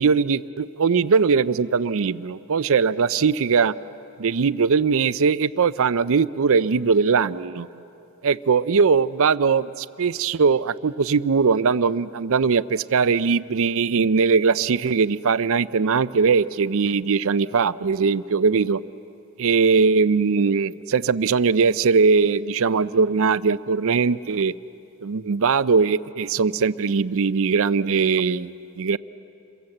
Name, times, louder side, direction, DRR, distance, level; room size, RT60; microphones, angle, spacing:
voice 1, 0.0-3.7 4.2-7.7 8.2-18.8 19.4-24.5 25.0-29.0, right 5 dB, 65° right, 16 dB, 0.5 m, -20 dB
28.0 x 23.0 x 7.8 m, 2.8 s
head